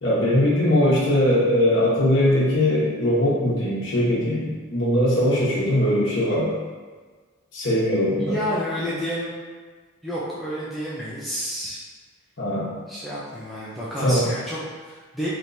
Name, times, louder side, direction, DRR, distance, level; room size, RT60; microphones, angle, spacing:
voice 1, 0.0-6.5 7.5-8.3 12.4-12.7 14.0-14.3, left 1 dB, 60° left, -7 dB, 1.0 m, -20 dB
voice 2, 7.9-9.3 10.0-11.8 12.9-15.3, equal, ahead, -9 dB, 0.4 m, -30 dB
3.5 x 2.9 x 2.6 m, 1.5 s
head